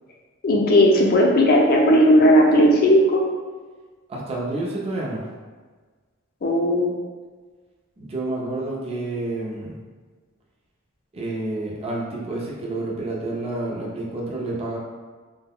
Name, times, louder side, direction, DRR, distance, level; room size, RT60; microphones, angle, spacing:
voice 1, 0.4-3.2 6.4-7.0, equal, 45° left, -1 dB, 0.4 m, -16 dB
voice 2, 4.1-5.2 8.0-9.8 11.1-14.8, right 2 dB, 30° right, -4 dB, 0.4 m, -29 dB
2.2 x 2.1 x 3.5 m, 1.4 s
head